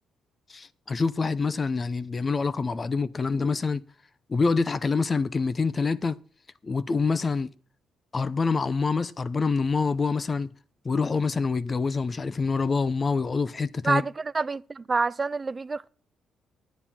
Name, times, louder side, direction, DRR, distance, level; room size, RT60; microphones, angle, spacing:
voice 1, 0.5-3.8 4.3-6.2 6.6-7.5 8.1-10.5 10.8-14.0, left 4 dB, 35° left, 0.8 m, -26 dB
voice 2, 13.8-15.9, right 4 dB, 30° right, 0.5 m, -27 dB
11.5 x 9.8 x 4.3 m
cardioid pair, 90°, 0 cm